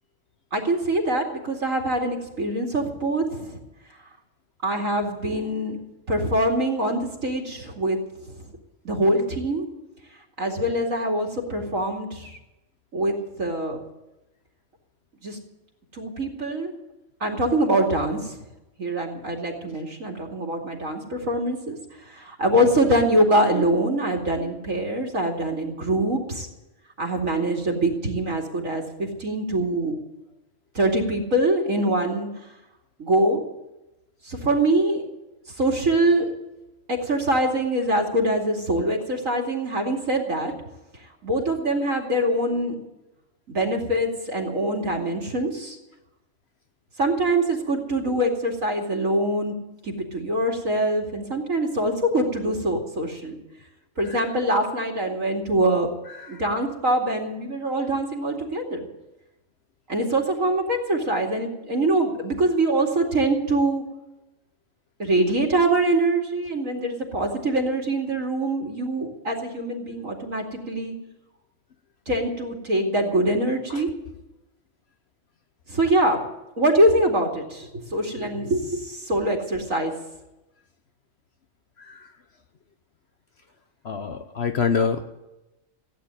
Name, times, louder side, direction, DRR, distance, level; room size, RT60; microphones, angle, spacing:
voice 1, 0.5-3.6 4.6-5.8 6.1-8.0 8.2-8.5 8.8-9.7 10.4-12.4 12.9-13.8 15.2-15.4 15.9-16.7 17.2-18.4 18.8-21.8 22.1-26.5 27.0-30.0 30.7-32.3 33.0-33.4 34.2-35.0 35.6-36.3 36.9-40.5 41.2-42.7 43.5-45.8 47.0-49.5 49.8-53.4 54.0-55.9 56.3-58.9 59.9-63.8 65.0-70.9 72.1-73.9 75.7-76.2 76.6-79.9, right 1 dB, 85° right, 1 dB, 2.9 m, -24 dB
voice 2, 83.8-85.0, left 6 dB, 55° left, 8 dB, 1.1 m, -26 dB
16.0 x 9.2 x 8.8 m, 0.98 s
omnidirectional pair, 1.4 m